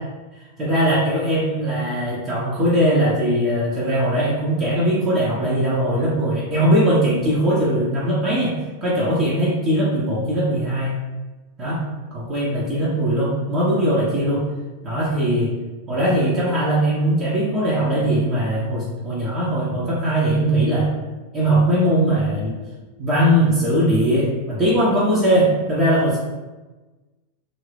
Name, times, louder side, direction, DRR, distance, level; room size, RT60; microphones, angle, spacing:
voice 1, 0.6-8.5 8.8-11.0 11.6-11.8 12.1-14.4 14.8-15.5 15.9-20.9 21.3-22.6 23.0-26.2, right 1 dB, 20° right, -8 dB, 0.9 m, -20 dB
2.7 x 2.6 x 3.4 m, 1.2 s
figure-of-eight pair, 90°, 0 cm